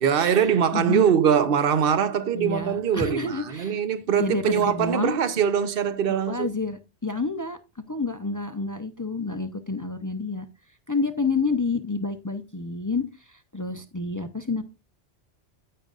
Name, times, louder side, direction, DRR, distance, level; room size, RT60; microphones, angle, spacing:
voice 1, 0.0-6.5, right 8 dB, 60° right, 1.0 m, -22 dB
voice 2, 0.7-1.0 2.3-3.8 4.2-5.2 6.3-7.6 7.9-10.5 10.9-14.6, left 3 dB, 25° left, 0.5 m, -29 dB
9.7 x 9.1 x 2.5 m
omnidirectional pair, 1.1 m